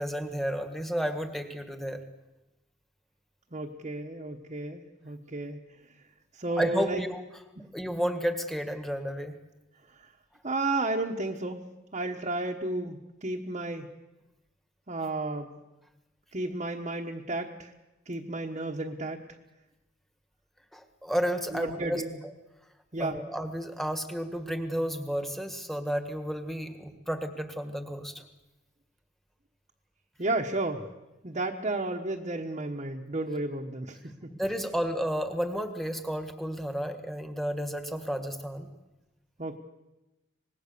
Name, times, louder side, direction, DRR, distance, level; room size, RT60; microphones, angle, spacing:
voice 1, 0.0-2.0 6.6-7.2 7.7-9.3 20.7-22.0 23.0-28.2 34.4-38.7, equal, ahead, 7 dB, 1.7 m, -32 dB
voice 2, 3.5-5.6 6.3-7.0 7.6-7.7 9.9-10.1 10.4-11.6 11.9-13.9 14.9-15.6 16.3-17.7 18.0-19.2 21.5-22.2 22.9-23.2 30.2-30.9 31.2-34.3 39.4-39.6, right 2 dB, 35° right, 0 dB, 1.2 m, -32 dB
25.0 x 19.5 x 6.9 m, 1.0 s
head